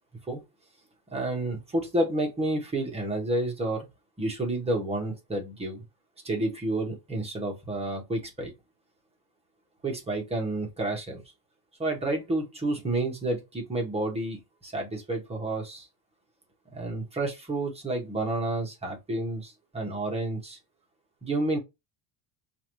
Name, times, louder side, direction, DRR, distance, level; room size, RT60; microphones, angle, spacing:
voice 1, 1.1-3.9 4.2-5.8 6.2-8.5 9.8-11.2 11.8-15.9 16.7-20.6 21.2-21.6, right 2 dB, 15° right, 1.0 m, -30 dB
4.8 x 2.6 x 3.0 m
cardioid pair, 160°, 46 cm